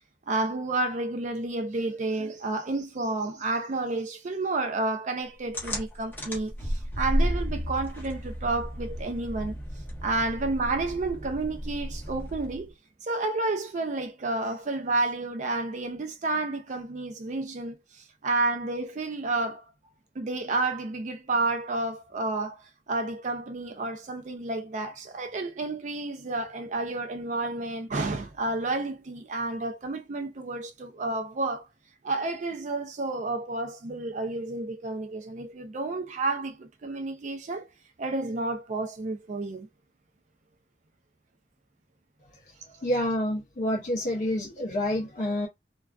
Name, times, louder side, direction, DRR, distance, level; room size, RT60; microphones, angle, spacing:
voice 1, 0.3-9.6 10.0-12.7 13.0-17.8 18.2-19.6 20.2-22.6 22.9-31.6 32.0-37.7 38.0-39.7, right 2 dB, 45° right, 0.4 m, -30 dB
sound 1, 5.5-12.7, equal, 10° left, 0.7 m, -33 dB
voice 2, 42.8-45.5, left 1 dB, 45° left, 0.5 m, -28 dB
2.3 x 2.3 x 2.3 m
head